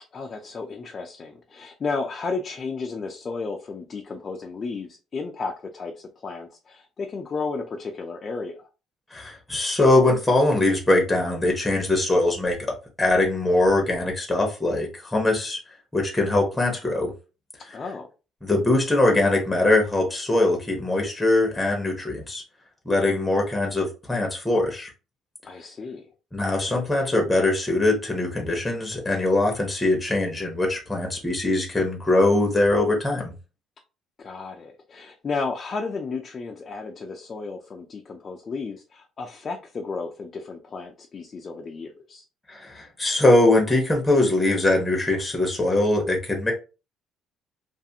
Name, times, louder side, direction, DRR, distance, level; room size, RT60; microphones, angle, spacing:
voice 1, 0.1-8.7 17.7-18.1 25.4-26.1 34.2-42.2, left 4 dB, 30° left, 0.4 m, -33 dB
voice 2, 9.1-12.6 13.0-15.6 15.9-17.1 17.7-17.8 18.4-22.4 22.9-24.9 26.3-33.3 42.5-46.5, left 2 dB, 10° left, 0.7 m, -22 dB
2.5 x 2.4 x 2.7 m
cardioid pair, 135°, 0 cm